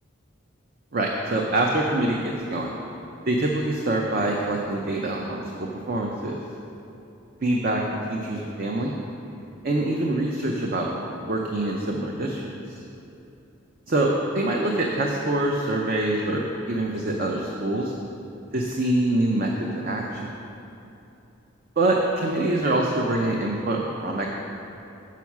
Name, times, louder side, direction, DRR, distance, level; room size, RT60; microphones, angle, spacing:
voice 1, 0.9-2.2 2.5-2.7 3.3-6.4 7.4-8.9 9.6-10.9 11.2-12.4 13.9-14.1 14.3-17.9 18.5-20.3 21.8-24.3, right 2 dB, 45° right, 0 dB, 0.5 m, -25 dB
7.1 x 5.8 x 5.9 m, 2.9 s
head